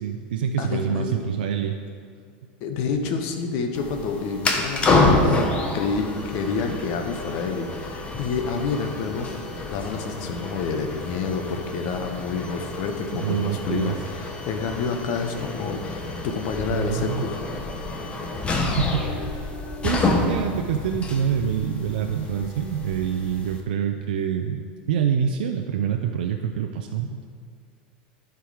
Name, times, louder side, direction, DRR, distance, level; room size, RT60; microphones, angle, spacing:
voice 1, 0.0-1.8 13.1-14.0 16.7-17.3 18.8-24.6 24.9-27.3, right 8 dB, 90° right, 4 dB, 0.5 m, -26 dB
voice 2, 0.6-1.1 2.6-5.5 5.7-15.8 16.2-17.4, left 5 dB, 60° left, 5 dB, 1.0 m, -28 dB
sound 1, 3.7-23.6, left 2 dB, 25° left, 0.9 m, -28 dB
11.5 x 4.7 x 4.9 m, 2.2 s
supercardioid pair, 130°, 5 cm